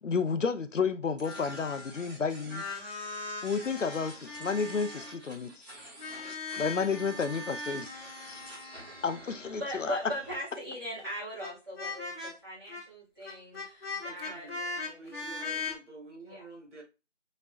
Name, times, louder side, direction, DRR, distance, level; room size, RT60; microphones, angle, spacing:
voice 1, 0.0-2.7 3.4-5.7 6.6-7.9 8.3-8.5 9.0-10.0, left 5 dB, 85° left, 0.7 m, -31 dB
sound 1, 1.2-2.1 2.3-5.3 6.0-10.2 11.0-11.1 11.4-11.5 11.7-12.3 12.7-12.8 13.2-15.7, left 3 dB, 50° left, 1.7 m, -40 dB
sound 2, 1.2-10.4, right 1 dB, 35° right, 1.9 m, -49 dB
voice 2, 9.5-15.6 16.2-16.4, equal, 20° right, 2.0 m, -40 dB
voice 3, 14.0-14.6 14.9-16.8, right 2 dB, 70° right, 1.8 m, -49 dB
5.1 x 3.2 x 2.5 m
figure-of-eight pair, 170°, 37 cm